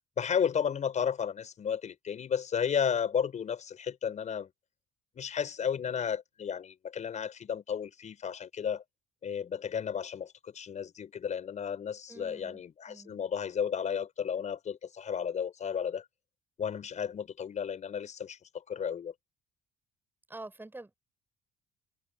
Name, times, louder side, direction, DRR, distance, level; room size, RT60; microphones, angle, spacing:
voice 1, 0.2-4.5 5.1-8.8 9.2-16.0 16.6-18.4 18.7-19.1, left 7 dB, 45° left, 6.6 m, -33 dB
voice 2, 12.1-12.6 12.9-13.2 20.3-20.9, right 2 dB, 10° right, 6.9 m, -46 dB
cardioid pair, 110°, 17 cm